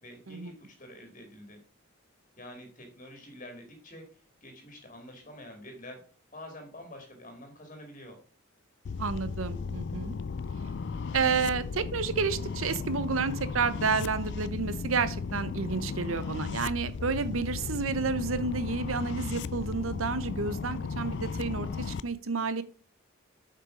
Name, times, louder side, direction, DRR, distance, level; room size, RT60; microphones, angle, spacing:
voice 1, 0.0-1.6 2.4-6.0 6.3-8.2, left 1 dB, 35° left, 4 dB, 2.1 m, -47 dB
sound 1, 8.9-22.0, left 5 dB, 55° left, 0.4 m, -35 dB
voice 2, 9.0-10.2 11.1-22.6, right 5 dB, 80° right, 14 dB, 0.8 m, -30 dB
7.9 x 5.5 x 5.0 m, 0.43 s
head